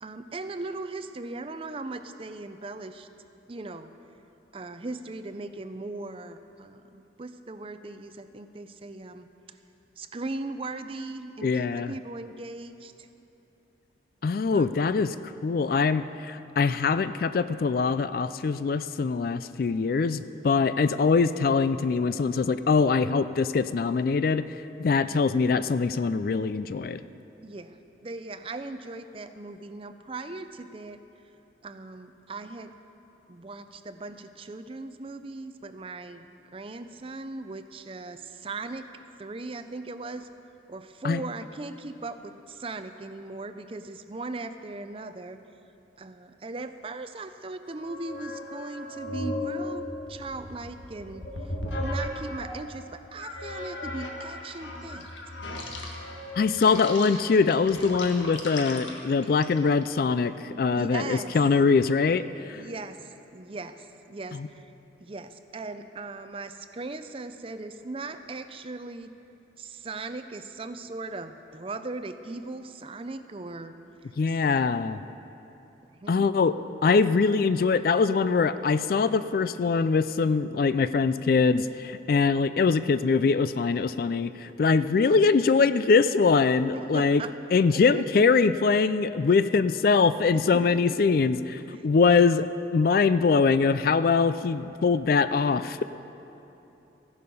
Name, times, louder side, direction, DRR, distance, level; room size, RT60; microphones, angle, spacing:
voice 1, 0.0-3.1 3.5-3.9 4.5-9.3 10.0-13.1 14.5-14.7 27.4-31.0 31.6-32.8 33.3-36.3 36.5-38.9 39.2-40.3 40.7-45.4 46.0-55.1 60.5-61.4 62.5-64.7 65.0-69.1 69.6-73.7 76.0-76.3 86.7-87.3 87.7-88.0 90.3-90.8 91.1-91.2 91.7-91.8, right 3 dB, 30° right, 10 dB, 0.5 m, -38 dB
voice 2, 11.4-11.9 14.2-15.1 15.4-24.5 24.8-27.0 41.0-41.2 56.3-62.6 64.3-64.5 74.2-75.0 76.1-87.2 87.5-95.8, left 4 dB, 50° left, 13 dB, 0.3 m, -23 dB
sound 1, 47.7-52.6 53.2-59.8, left 1 dB, 85° left, 1.6 m, -36 dB
15.0 x 11.0 x 5.4 m, 3.0 s
head